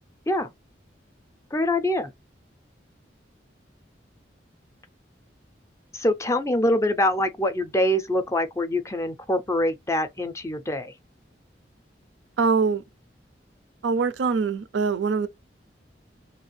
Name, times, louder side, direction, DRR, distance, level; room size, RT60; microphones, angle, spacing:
voice 1, 1.5-2.1 5.9-10.9, left 1 dB, 15° left, 0.4 m, -24 dB
voice 2, 12.4-12.8 13.8-15.3, right 5 dB, 80° right, 0.4 m, -23 dB
2.7 x 2.4 x 3.0 m
head